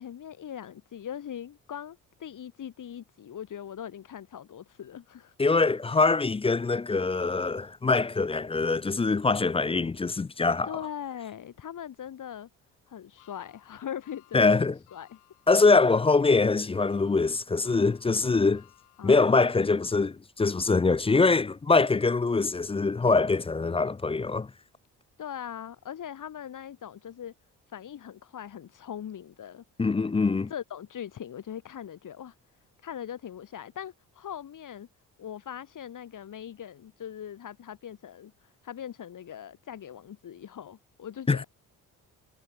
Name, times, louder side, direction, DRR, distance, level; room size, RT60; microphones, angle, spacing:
voice 1, 0.0-5.3 10.6-12.5 12.9-14.5 14.9-15.2 19.0-19.6 25.2-27.3 27.7-29.6 30.5-32.3 32.8-34.9 35.2-38.3 38.6-41.5, left 9 dB, 60° left, 4.2 m, -40 dB
voice 2, 5.4-10.7 14.3-14.8 15.5-18.6 19.0-24.5 29.8-30.5 41.3-41.4, left 3 dB, 15° left, 0.5 m, -23 dB
sound 1, 13.2-21.5 22.0-22.1 23.3-23.4, left 23 dB, 90° left, 7.7 m, -61 dB
supercardioid pair, 65°, 36 cm